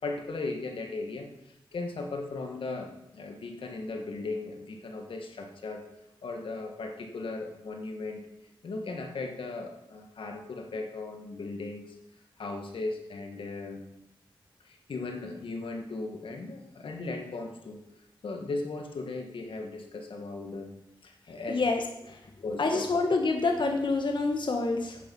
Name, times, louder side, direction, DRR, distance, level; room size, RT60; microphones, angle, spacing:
voice 1, 0.0-5.9 6.2-8.2 8.6-12.0 12.4-13.8 14.6-17.8 18.2-20.8 21.0-21.6 22.4-23.1, left 3 dB, 90° left, 3 dB, 1.6 m, -37 dB
voice 2, 21.5-21.8 22.6-25.0, left 3 dB, 65° left, 4 dB, 1.4 m, -27 dB
10.0 x 8.8 x 5.5 m, 0.81 s
wide cardioid pair, 75°, 9 cm